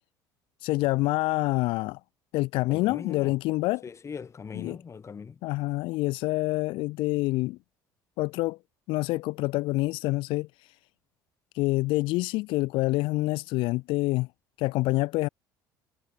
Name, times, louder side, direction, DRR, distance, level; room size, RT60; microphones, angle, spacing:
voice 1, 0.6-2.0 2.3-3.8 4.5-4.8 5.4-7.6 8.2-8.6 8.9-10.5 11.5-14.3 14.6-15.3, left 21 dB, 55° left, 2.8 m, -27 dB
voice 2, 2.7-3.3 3.8-5.4, left 6 dB, 30° left, 3.4 m, -40 dB
figure-of-eight pair, 60°, 10 cm